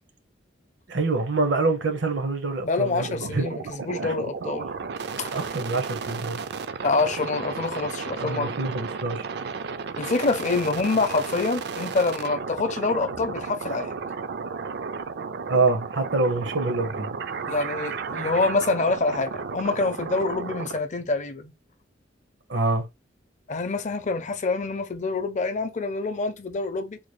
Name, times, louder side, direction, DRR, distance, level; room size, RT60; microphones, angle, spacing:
voice 1, 0.9-3.5 4.0-4.1 5.3-6.4 6.7-6.8 8.2-9.3 15.5-17.1 22.5-22.8, right 3 dB, 80° right, 1.0 m, -26 dB
voice 2, 2.6-4.7 5.2-5.4 6.8-8.5 10.0-13.9 17.5-21.5 23.5-27.0, left 3 dB, 40° left, 0.5 m, -26 dB
sound 1, 3.0-20.8, right 5 dB, 60° right, 0.4 m, -33 dB
3.8 x 2.3 x 3.1 m
head